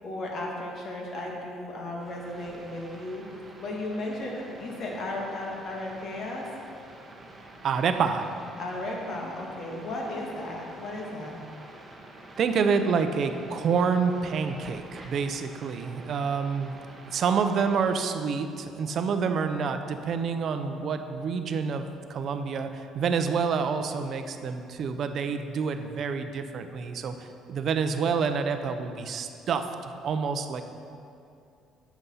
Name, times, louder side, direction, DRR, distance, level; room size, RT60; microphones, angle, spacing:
voice 1, 0.0-3.2 3.6-6.5 8.6-11.4, left 1 dB, 55° left, -2 dB, 2.0 m, -35 dB
sound 1, 2.0-17.9, right 2 dB, 25° right, 1.1 m, -48 dB
voice 2, 7.6-8.3 12.4-16.8 17.1-30.6, right 5 dB, 55° right, 8 dB, 0.7 m, -28 dB
8.0 x 7.1 x 5.6 m, 2.5 s
cardioid pair, 110°, 0 cm